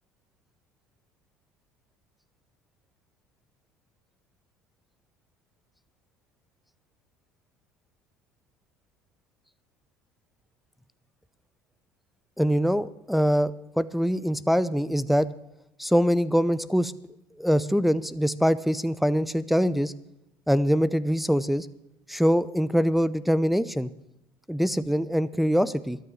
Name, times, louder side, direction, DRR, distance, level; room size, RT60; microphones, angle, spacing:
voice 1, 12.4-15.3 15.8-16.9 17.4-19.9 20.5-21.7 22.1-23.9 24.5-26.0, equal, ahead, 14 dB, 0.7 m, -23 dB
13.5 x 9.5 x 8.8 m, 0.89 s
supercardioid pair, 85°, 10 cm